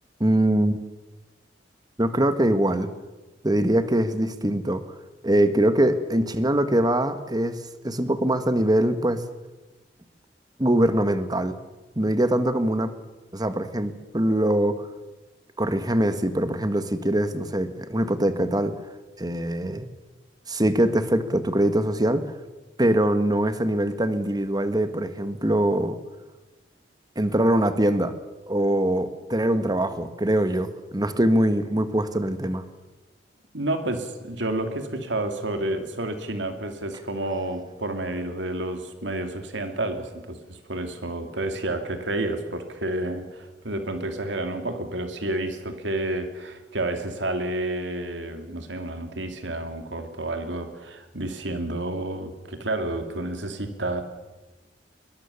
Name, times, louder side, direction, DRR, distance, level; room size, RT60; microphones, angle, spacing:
voice 1, 0.2-0.8 2.0-2.9 3.4-4.8 5.2-9.2 10.6-11.6 11.9-12.9 13.3-14.9 15.6-18.7 19.2-19.9 20.5-22.2 22.8-26.0 27.1-28.1 28.5-32.6, right 1 dB, 20° right, 11 dB, 1.5 m, -23 dB
voice 2, 33.5-54.0, right 1 dB, 80° right, 6 dB, 2.9 m, -30 dB
21.5 x 21.0 x 7.1 m, 1.1 s
head